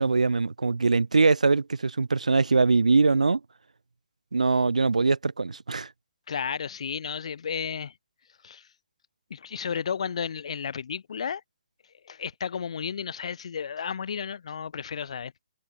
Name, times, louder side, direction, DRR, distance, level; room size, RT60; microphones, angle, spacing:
voice 1, 0.0-3.4 4.3-5.9, right 4 dB, 70° right, 2.9 m, -22 dB
voice 2, 6.3-7.9 8.4-8.7 9.3-11.4 12.0-15.3, left 7 dB, 55° left, 3.5 m, -33 dB
figure-of-eight pair, 135°, 4 cm